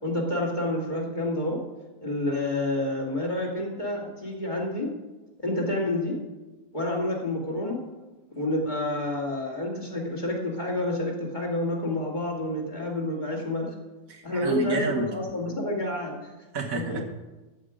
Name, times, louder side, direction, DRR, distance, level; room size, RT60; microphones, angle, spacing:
voice 1, 0.0-1.6 2.0-4.9 5.4-6.2 6.7-7.8 8.3-13.7 14.2-16.3 16.9-17.0, left 1 dB, 30° left, -2 dB, 2.5 m, -29 dB
voice 2, 14.1-15.1 16.5-17.0, right 3 dB, 65° right, 2 dB, 1.5 m, -29 dB
14.0 x 9.0 x 5.1 m, 1.1 s
omnidirectional pair, 1.6 m